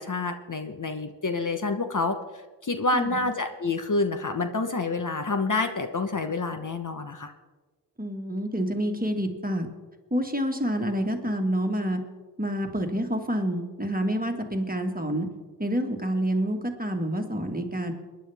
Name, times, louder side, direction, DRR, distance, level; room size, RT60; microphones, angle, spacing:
voice 1, 0.0-2.2 2.6-7.3, left 3 dB, 45° left, 7 dB, 1.1 m, -28 dB
voice 2, 2.9-3.3 8.0-9.7 10.1-12.0 12.4-15.3 15.6-17.9, equal, 20° right, 3 dB, 1.8 m, -28 dB
22.5 x 10.0 x 3.5 m, 1.3 s
cardioid pair, 45°, 42 cm